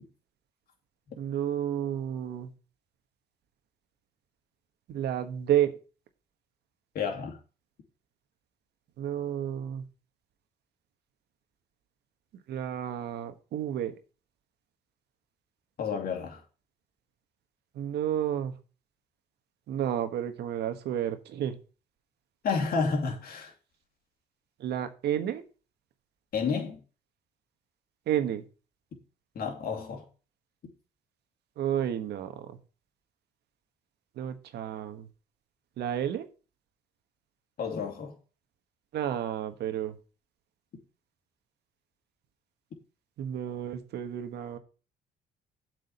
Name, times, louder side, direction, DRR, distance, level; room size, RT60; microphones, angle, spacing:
voice 1, 1.2-2.5 4.9-5.8 9.0-9.9 12.5-13.9 17.7-18.5 19.7-21.6 24.6-25.4 28.1-28.4 31.6-32.6 34.1-35.1 35.8-36.3 38.9-40.0 43.2-44.6, right 10 dB, 75° right, 1.3 m, -31 dB
voice 2, 6.9-7.4 15.8-16.4 22.4-23.5 26.3-26.8 29.3-30.1 37.6-38.1, left 5 dB, 60° left, 2.6 m, -30 dB
7.9 x 5.0 x 7.1 m
cardioid pair, 80°, 17 cm